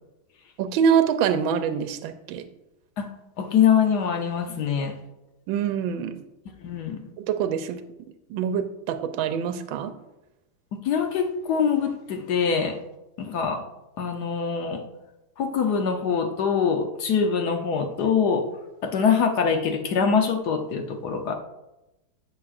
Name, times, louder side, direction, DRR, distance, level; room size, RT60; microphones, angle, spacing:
voice 1, 0.6-2.4 5.5-6.2 7.3-7.8 8.3-9.9, right 7 dB, 75° right, 9 dB, 1.4 m, -25 dB
voice 2, 3.4-5.0 6.6-7.0 10.8-12.8 13.2-13.6 14.0-14.8 15.4-18.4 18.8-21.3, left 6 dB, 60° left, 5 dB, 1.2 m, -24 dB
10.5 x 7.5 x 2.5 m, 0.94 s
omnidirectional pair, 2.3 m